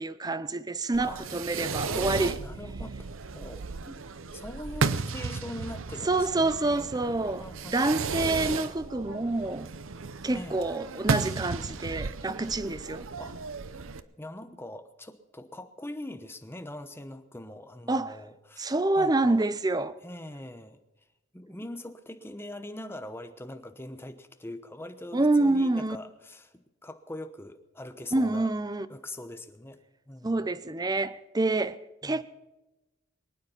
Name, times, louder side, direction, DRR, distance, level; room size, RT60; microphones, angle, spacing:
voice 1, 0.0-2.4 6.1-7.5 7.7-9.7 10.2-13.1 17.9-18.2 18.6-20.0 25.1-26.0 28.1-28.9 30.2-32.2, right 2 dB, 20° right, 0.6 m, -27 dB
Fireworks, 0.9-14.0, right 4 dB, 75° right, 0.7 m, -34 dB
voice 2, 1.8-3.7 4.3-7.8 10.3-10.6 13.2-13.4 14.2-19.5 20.0-20.8 21.3-28.5 28.9-29.8 30.1-30.5 32.0-32.2, left 1 dB, 10° left, 1.0 m, -42 dB
23.0 x 9.5 x 5.7 m
head